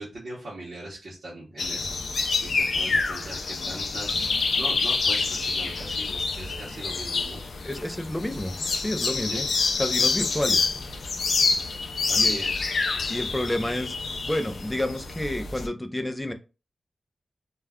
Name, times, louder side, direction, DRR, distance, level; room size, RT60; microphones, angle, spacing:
voice 1, 0.0-7.4 9.3-9.5 12.1-12.7, right 2 dB, 55° right, -6 dB, 0.8 m, -40 dB
sound 1, 1.6-15.7, left 4 dB, 75° left, 0.4 m, -27 dB
voice 2, 7.6-10.6 12.1-12.4 13.1-14.0 14.2-16.3, left 1 dB, 10° left, 7 dB, 0.3 m, -30 dB
2.3 x 2.2 x 3.4 m, 0.31 s
wide cardioid pair, 165°, 0 cm